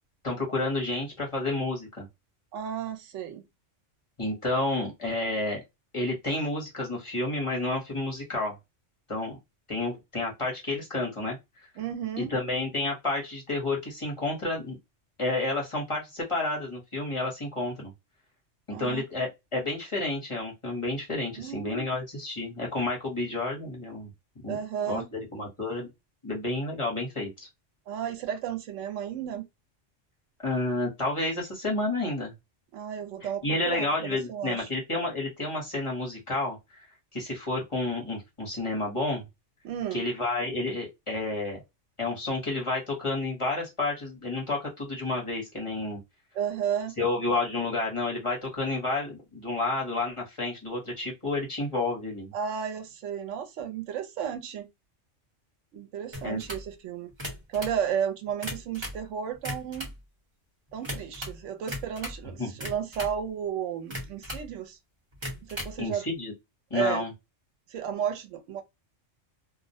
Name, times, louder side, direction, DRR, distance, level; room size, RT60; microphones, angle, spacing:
voice 1, 0.2-2.1 4.2-5.6 5.9-8.6 9.1-9.4 9.7-11.4 11.6-11.7 12.2-14.8 15.2-17.9 18.7-24.1 24.4-24.6 24.9-25.9 26.2-27.5 30.4-32.3 33.2-36.9 37.1-39.3 39.9-41.6 42.0-46.0 47.0-52.3 56.2-56.4 62.4-62.5 65.8-66.3 66.7-67.1, left 2 dB, 30° left, 0.8 m, -30 dB
voice 2, 2.5-3.4 11.8-12.3 18.7-19.0 21.4-21.9 24.5-25.1 27.9-29.4 32.7-34.7 39.6-40.0 46.3-46.9 52.3-54.7 55.7-57.1 57.5-59.9 60.7-64.8 65.4-66.0 66.7-67.0 67.7-68.6, right 8 dB, 85° right, 0.9 m, -33 dB
sound 1, 56.1-56.7 57.1-57.8 58.3-59.0 59.3-60.0 60.8-61.4 61.7-62.2 62.6-63.2 63.9-64.5 65.1-65.8, equal, 25° right, 0.9 m, -37 dB
2.3 x 2.0 x 2.6 m
omnidirectional pair, 1.2 m